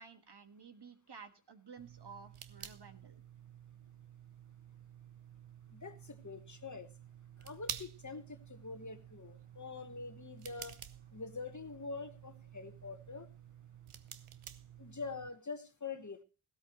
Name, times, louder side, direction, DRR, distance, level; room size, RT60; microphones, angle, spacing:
voice 1, 0.0-3.2, right 5 dB, 55° right, 8 dB, 1.6 m, -53 dB
sound 1, 1.8-15.3, right 9 dB, 80° right, 1.0 m, -51 dB
voice 2, 5.7-6.9 7.4-10.8 11.1-13.3 14.8-16.2, left 4 dB, 35° left, 9 dB, 1.3 m, -45 dB
16.5 x 13.0 x 3.0 m, 0.31 s
wide cardioid pair, 80°, 49 cm